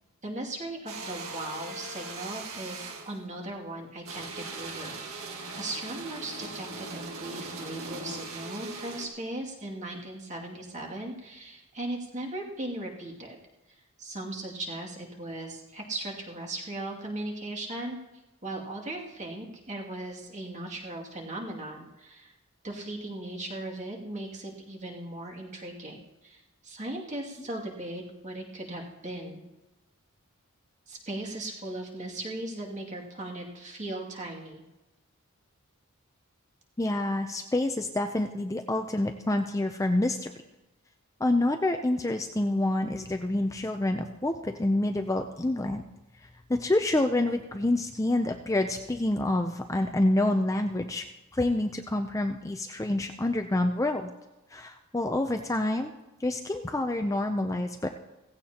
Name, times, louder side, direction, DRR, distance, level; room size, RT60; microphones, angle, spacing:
voice 1, 0.2-13.4 14.0-18.0 18.4-22.3 22.6-29.4 30.9-34.6, right 1 dB, 35° right, -2 dB, 2.4 m, -38 dB
sound 1, 0.9-3.2 4.0-9.1, right 3 dB, 75° right, 1.9 m, -39 dB
voice 2, 36.8-40.3 41.2-45.8 46.5-51.1 51.3-54.1 54.5-55.9 56.2-57.9, left 1 dB, 15° left, 6 dB, 0.5 m, -27 dB
17.0 x 15.5 x 2.9 m, 1.0 s
head